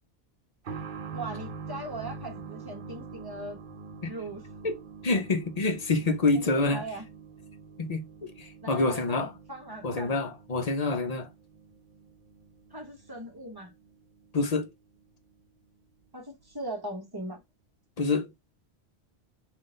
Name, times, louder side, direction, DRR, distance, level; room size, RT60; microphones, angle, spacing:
sound 1, 0.6-15.1 15.3-15.4 16.4-16.5, right 5 dB, 55° right, 0.8 m, -45 dB
voice 1, 1.1-3.6 4.0-4.5 6.3-7.1 8.6-10.1 12.7-13.7 16.1-17.4, right 1 dB, 25° right, 1.0 m, -39 dB
voice 2, 5.0-6.8 7.8-9.3 9.8-11.3 14.3-14.7 18.0-18.3, left 3 dB, 45° left, 0.6 m, -27 dB
3.8 x 2.5 x 3.7 m
omnidirectional pair, 1.1 m